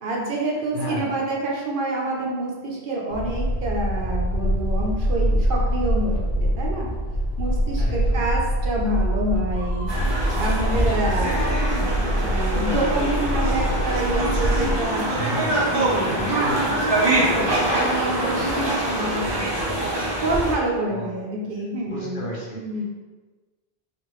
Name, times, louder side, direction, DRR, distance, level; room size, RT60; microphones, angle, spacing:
voice 1, 0.0-6.9 7.4-9.9 10.4-11.9 12.2-15.1 15.7-16.7 17.1-19.5 20.2-22.8, right 1 dB, 60° right, -2 dB, 0.8 m, -27 dB
voice 2, 0.7-1.1 7.8-8.3 15.1-16.9 20.9-21.2 21.9-22.6, equal, 55° left, -4 dB, 0.9 m, -33 dB
sound 1, 3.1-14.8, equal, 85° left, 0.9 m, -24 dB
Screaming, 9.5-12.4, right 1 dB, 10° right, 1.4 m, -41 dB
sound 2, 9.9-20.5, right 1 dB, 30° right, 0.7 m, -24 dB
3.4 x 2.6 x 3.0 m, 1.3 s
omnidirectional pair, 1.0 m